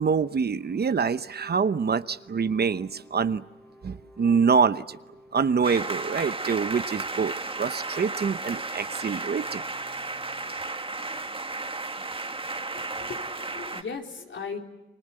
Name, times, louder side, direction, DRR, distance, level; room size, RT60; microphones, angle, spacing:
voice 1, 0.0-3.4 3.8-5.0 5.3-9.6, right 6 dB, 50° right, 13 dB, 0.9 m, -25 dB
sound 1, 0.6-10.5, equal, 10° left, 4.5 m, -54 dB
sound 2, 5.6-13.8, right 3 dB, 25° right, 1.9 m, -34 dB
voice 2, 12.7-14.6, left 5 dB, 70° left, 3 dB, 3.9 m, -38 dB
29.0 x 24.5 x 7.7 m, 1.1 s
cardioid pair, 85°, 21 cm